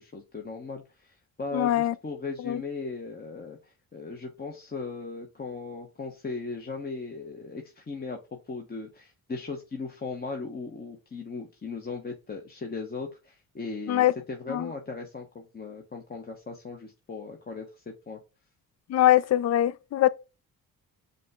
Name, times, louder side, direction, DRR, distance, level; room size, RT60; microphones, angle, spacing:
voice 1, 0.0-8.2 8.5-18.2, left 4 dB, 25° left, 0.9 m, -38 dB
voice 2, 1.5-1.9 2.5-2.6 13.9-14.1 14.5-14.7 18.9-20.1, left 13 dB, 45° left, 0.4 m, -22 dB
5.2 x 2.2 x 3.6 m
supercardioid pair, 65°, 36 cm